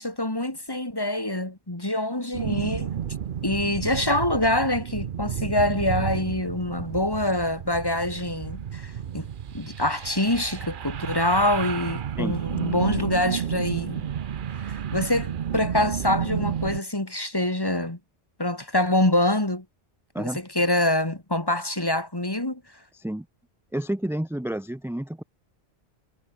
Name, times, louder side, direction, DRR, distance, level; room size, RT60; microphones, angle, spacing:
voice 1, 0.0-2.9 3.4-9.3 9.5-14.0 14.6-18.0 18.4-19.6 20.2-22.6, left 1 dB, 20° left, 2.5 m, -25 dB
sound 1, 2.3-16.8, right 8 dB, 55° right, 0.8 m, -31 dB
voice 2, 22.9-23.3 23.7-25.2, right 1 dB, 5° right, 0.6 m, -30 dB
omnidirectional pair, 1.0 m